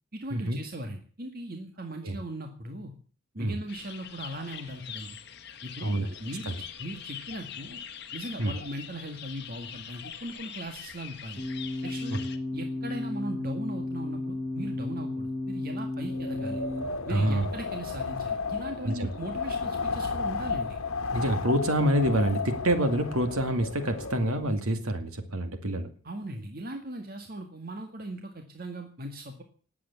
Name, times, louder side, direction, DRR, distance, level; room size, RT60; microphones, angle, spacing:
voice 1, 0.1-2.9 3.3-5.2 5.6-7.8 8.1-11.4 11.8-12.1 12.5-16.6 17.1-20.8 26.0-29.4, right 1 dB, 45° right, 4 dB, 2.0 m, -38 dB
sound 1, 3.7-12.4, left 8 dB, 50° left, 1.7 m, -43 dB
voice 2, 5.8-6.1 6.5-6.6 8.4-8.5 12.1-12.2 17.1-17.5 18.8-19.1 21.1-25.9, right 1 dB, 80° right, 7 dB, 2.4 m, -27 dB
sound 2, 11.4-16.8, left 2 dB, 15° left, 7.9 m, -33 dB
Wind, 16.1-24.5, left 4 dB, 80° left, 1.6 m, -34 dB
19.5 x 8.6 x 8.3 m, 0.42 s
head